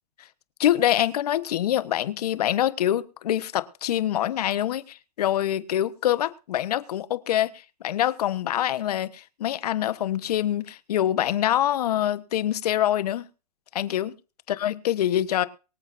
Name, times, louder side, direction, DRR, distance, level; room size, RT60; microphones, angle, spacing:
voice 1, 0.6-7.5 7.8-13.3 13.7-14.1 14.6-15.4, left 12 dB, 75° left, 1.2 m, -25 dB
23.5 x 8.3 x 2.7 m
hypercardioid pair, 135°, 20 cm